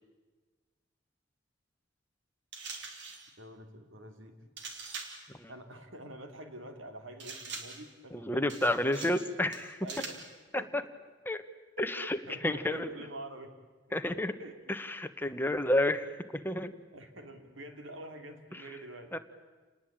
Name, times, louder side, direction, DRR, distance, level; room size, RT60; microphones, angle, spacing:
sound 1, 2.5-3.3 4.6-5.3 7.2-7.9 8.5-9.2 9.5-10.3, right 4 dB, 65° right, 3.6 m, -43 dB
voice 1, 3.4-4.5 5.5-8.7 9.8-10.2 10.5-10.7 11.8-13.6 14.4-14.5 16.9-19.1, right 1 dB, 90° right, 6 dB, 3.2 m, -46 dB
voice 2, 8.1-9.9 10.5-10.8 11.2-11.4 11.8-12.2 12.4-12.9 13.9-14.3 14.7-16.1 16.3-16.7 18.5-18.6 19.1-19.2, left 1 dB, 10° left, 8 dB, 1.3 m, -30 dB
28.5 x 20.0 x 8.9 m, 1.3 s
head